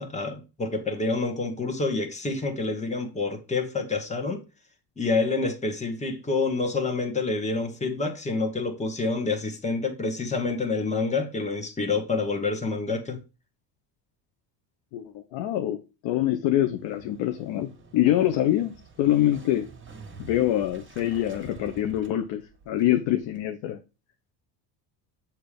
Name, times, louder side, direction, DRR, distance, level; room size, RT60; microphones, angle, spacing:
voice 1, 0.0-4.4 5.0-13.2, left 3 dB, 15° left, 1.4 m, -28 dB
voice 2, 14.9-19.7 20.2-23.8, left 13 dB, 60° left, 0.8 m, -25 dB
Motorcycle, 16.7-23.5, right 5 dB, 25° right, 1.5 m, -48 dB
6.9 x 2.9 x 5.1 m
hypercardioid pair, 75°, 49 cm